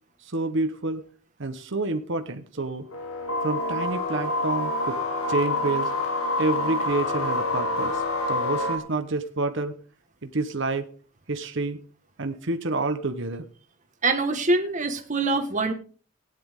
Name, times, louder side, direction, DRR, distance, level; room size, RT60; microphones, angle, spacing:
voice 1, 0.2-1.0 1.4-2.9 3.4-5.0 5.3-5.9 6.4-9.7 10.2-10.9 11.3-11.8 12.2-13.4, right 2 dB, 60° right, 7 dB, 1.1 m, -28 dB
sound 1, 2.9-8.8, left 2 dB, 85° left, 2.0 m, -27 dB
voice 2, 14.0-15.7, right 2 dB, 35° right, 6 dB, 1.5 m, -24 dB
17.0 x 9.7 x 3.6 m, 0.41 s
head